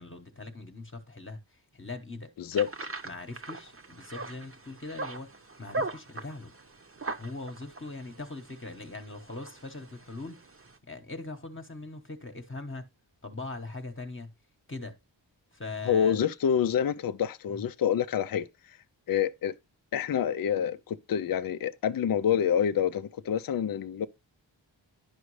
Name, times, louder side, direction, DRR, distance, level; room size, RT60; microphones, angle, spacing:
voice 1, 0.0-2.3 3.0-5.3 5.6-6.5 7.2-10.4 10.8-12.9 13.2-14.3 14.7-15.0 15.5-16.2 17.5-17.6, left 3 dB, 25° left, 1.1 m, -41 dB
sound 1, 2.5-10.8, right 3 dB, 30° right, 0.9 m, -40 dB
voice 2, 15.9-18.5 19.1-19.5 19.9-24.1, left 8 dB, 50° left, 0.5 m, -27 dB
10.5 x 5.1 x 3.1 m
wide cardioid pair, 60°, 45 cm